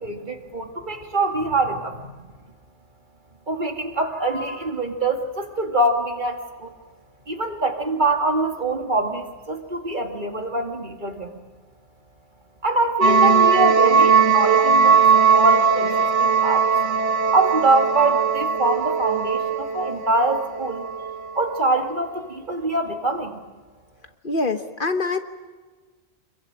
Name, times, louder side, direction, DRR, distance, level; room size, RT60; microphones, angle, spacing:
voice 1, 0.0-2.1 3.5-6.7 7.3-11.4 12.6-16.7 17.3-20.9 21.4-23.4, right 2 dB, 40° right, 4 dB, 2.4 m, -24 dB
sound 1, 13.0-21.1, right 6 dB, 85° right, 1.7 m, -18 dB
voice 2, 24.2-25.2, left 3 dB, 45° left, 8 dB, 1.4 m, -24 dB
26.0 x 22.5 x 8.8 m, 1.3 s
omnidirectional pair, 1.2 m